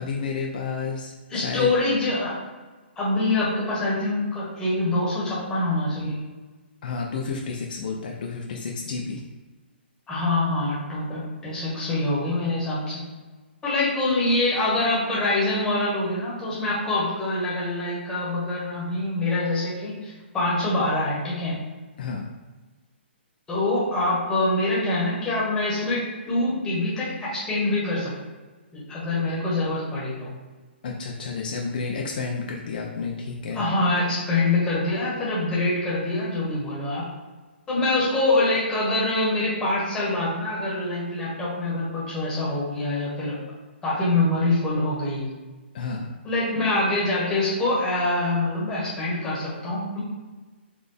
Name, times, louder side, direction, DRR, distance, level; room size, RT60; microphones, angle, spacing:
voice 1, 0.0-1.7 6.8-9.2 22.0-22.3 30.8-33.6 45.7-46.1, left 4 dB, 50° left, 0 dB, 0.6 m, -31 dB
voice 2, 1.3-2.4 3.0-6.2 10.1-13.0 13.6-21.6 23.5-28.1 28.7-30.3 33.5-37.1 37.7-43.4 43.8-45.3 46.2-50.0, left 2 dB, 10° left, -7 dB, 1.4 m, -25 dB
4.0 x 3.4 x 3.5 m, 1.3 s
hypercardioid pair, 160°, 6 cm